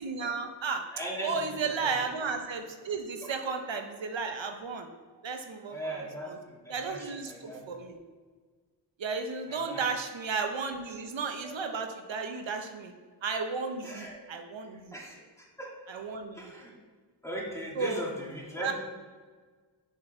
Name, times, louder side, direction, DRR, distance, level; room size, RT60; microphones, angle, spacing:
voice 1, 0.0-0.9 1.2-4.9 5.2-5.8 6.2-6.4 6.7-8.0 9.0-12.9 13.2-14.9 15.9-16.5 17.8-18.0 18.6-18.7, right 4 dB, 85° right, 5 dB, 0.7 m, -34 dB
voice 2, 0.9-1.9 3.2-3.3 5.1-5.2 5.7-7.6 9.5-9.8 11.4-11.6 13.8-14.2 14.9-15.7 16.3-16.7 17.2-18.7, right 1 dB, 5° left, -3 dB, 1.8 m, -39 dB
7.6 x 4.7 x 4.3 m, 1.5 s
wide cardioid pair, 70°, 44 cm